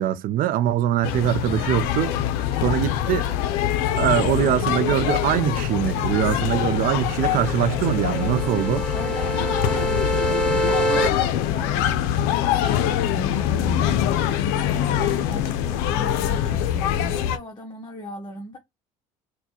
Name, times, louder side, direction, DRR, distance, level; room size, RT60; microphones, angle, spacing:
voice 1, 0.0-2.2 2.6-3.3 3.9-8.8, right 12 dB, 55° right, 0.5 m, -23 dB
sound 1, 1.0-17.4, left 10 dB, 70° left, 0.5 m, -24 dB
sound 2, 6.1-11.1, right 1 dB, 5° left, 1.6 m, -27 dB
voice 2, 8.9-18.6, left 1 dB, 25° left, 0.8 m, -38 dB
4.1 x 2.2 x 2.9 m
hypercardioid pair, 65°, 18 cm